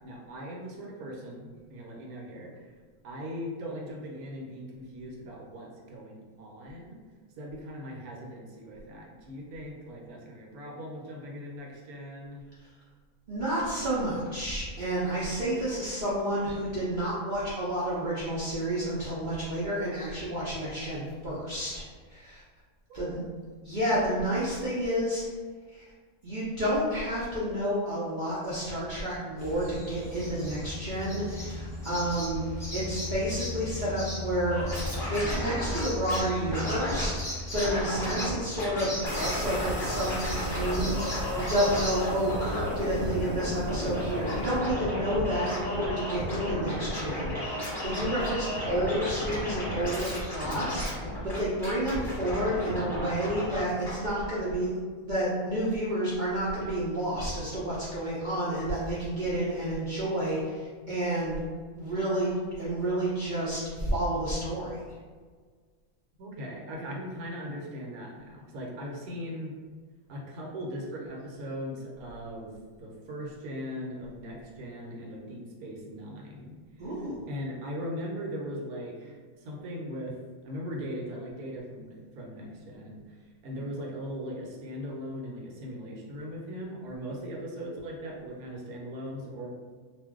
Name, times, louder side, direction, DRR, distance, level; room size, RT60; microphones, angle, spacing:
voice 1, 0.0-2.5 3.0-7.0 7.4-12.4 22.9-23.2 66.2-69.5 70.1-72.5 72.8-76.6 76.8-80.1 80.4-83.0 83.4-89.5, equal, 80° right, -1 dB, 1.1 m, -39 dB
voice 2, 13.3-22.4 22.9-23.2 23.6-25.2 25.7-25.8 26.2-54.8 55.0-61.4 61.7-64.7 76.8-77.2, right 1 dB, 55° right, -9 dB, 0.5 m, -30 dB
sound 1, 29.4-42.4, left 1 dB, 5° left, 0.6 m, -37 dB
Scratching (performance technique), 34.5-36.2 36.5-37.1 37.5-38.3 38.6-53.6 53.8-53.9, left 1 dB, 20° left, 1.0 m, -33 dB
sound 2, 39.1-44.6, right 1 dB, 45° left, 0.3 m, -42 dB
2.5 x 2.1 x 3.6 m, 1.5 s
omnidirectional pair, 1.6 m